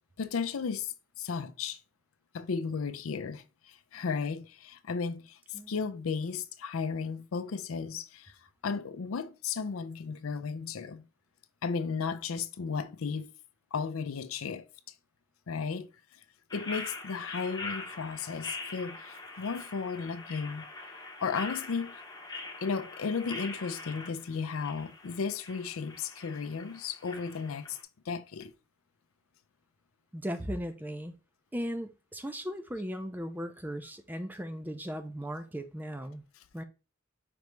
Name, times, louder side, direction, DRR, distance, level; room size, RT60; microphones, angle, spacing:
voice 1, 0.2-1.8 2.3-5.4 5.7-8.3 8.6-11.0 11.6-13.3 13.7-14.6 15.5-15.9 16.5-20.6 21.2-22.0 22.6-27.8 28.1-28.5, left 5 dB, 85° left, 0.5 m, -34 dB
sound 1, 16.5-27.8, left 3 dB, 20° left, 0.8 m, -43 dB
voice 2, 30.1-31.1 31.5-36.2 36.5-36.6, equal, 10° right, 0.5 m, -37 dB
5.1 x 3.3 x 3.1 m
head